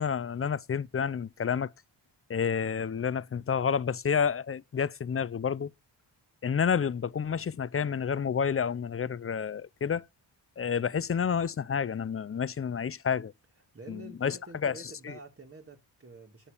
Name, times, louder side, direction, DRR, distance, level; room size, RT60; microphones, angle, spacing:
voice 1, 0.0-1.7 2.3-5.7 6.4-10.0 10.6-13.3 13.9-14.4 14.6-14.7 15.1-15.2, left 7 dB, 30° left, 0.6 m, -29 dB
voice 2, 13.7-16.5, right 2 dB, 30° right, 2.2 m, -48 dB
8.8 x 7.0 x 5.1 m
cardioid pair, 60°, 43 cm